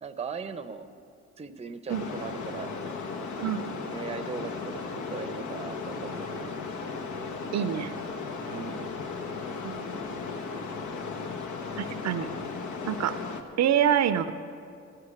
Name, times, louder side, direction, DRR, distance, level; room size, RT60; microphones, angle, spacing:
voice 1, 0.0-0.9 1.4-2.7 3.9-4.8 5.1-6.6 8.5-8.9, right 5 dB, 20° right, 10 dB, 0.7 m, -38 dB
sound 1, 1.9-13.4, left 4 dB, 70° left, 1.1 m, -36 dB
voice 2, 7.5-7.9 9.6-9.9 11.8-12.3 12.9-13.2 13.6-14.3, right 9 dB, 65° right, 11 dB, 0.5 m, -26 dB
14.5 x 6.7 x 8.4 m, 2.5 s
cardioid pair, 90°, 30 cm